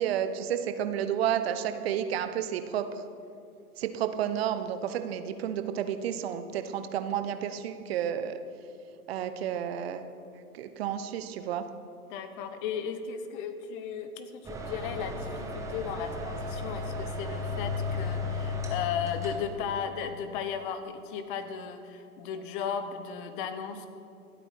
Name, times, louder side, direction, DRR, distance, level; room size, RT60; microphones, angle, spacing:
voice 1, 0.0-3.0 3.8-8.4 9.1-10.0 10.5-11.6, right 9 dB, 40° right, 9 dB, 1.1 m, -31 dB
voice 2, 12.1-23.9, left 7 dB, 35° left, 10 dB, 1.3 m, -35 dB
sound 1, 14.4-19.5, left 3 dB, 5° right, 1.4 m, -34 dB
26.5 x 9.0 x 4.5 m, 2.5 s
figure-of-eight pair, 115°, 45 cm